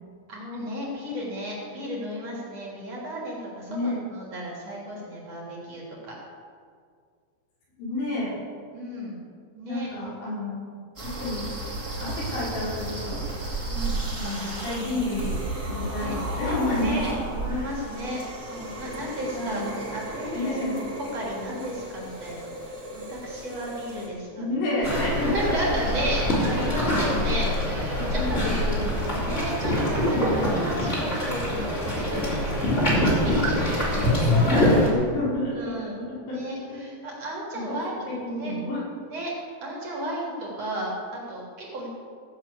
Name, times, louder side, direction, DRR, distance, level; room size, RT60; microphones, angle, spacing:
voice 1, 0.3-6.2 8.7-9.2 9.5-9.9 13.7-14.0 15.9-16.2 16.7-20.5 21.1-22.5 22.9-24.5 25.3-28.4 29.2-34.7 35.6-36.0 36.3-37.9 38.2-38.5 39.1-39.3 39.6-41.9, equal, 40° right, -4 dB, 3.7 m, -34 dB
voice 2, 3.7-4.1 7.8-8.3 9.7-10.6 11.0-11.5 12.0-13.2 14.2-15.3 15.7-17.0 17.5-17.7 19.3-19.8 20.3-20.8 24.4-25.6 26.6-26.8 27.9-29.2 33.9-35.6 36.3-36.8 37.5-37.8 38.1-38.8, left 1 dB, 70° left, -7 dB, 7.5 m, -30 dB
sound 1, 11.0-24.1, right 2 dB, 25° right, 2.8 m, -34 dB
sound 2, 24.8-34.9, left 1 dB, 15° left, 3.7 m, -24 dB
16.5 x 7.7 x 8.4 m, 2.1 s
omnidirectional pair, 5.2 m